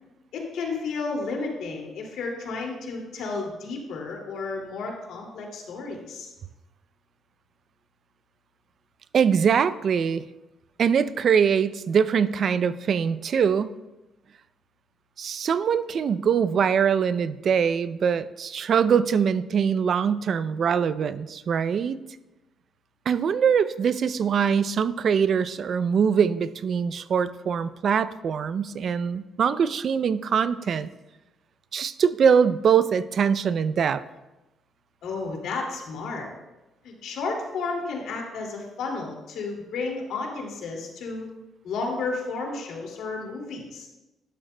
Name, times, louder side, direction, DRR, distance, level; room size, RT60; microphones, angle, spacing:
voice 1, 0.3-6.3 35.0-36.3 36.8-41.3 41.6-43.9, left 3 dB, 80° left, 0 dB, 2.4 m, -32 dB
voice 2, 9.1-10.2 10.8-13.8 15.2-22.0 23.1-30.9 31.7-34.0, right 7 dB, 55° right, 14 dB, 0.4 m, -23 dB
11.5 x 11.5 x 2.2 m, 1.0 s
cardioid pair, 90°, 0 cm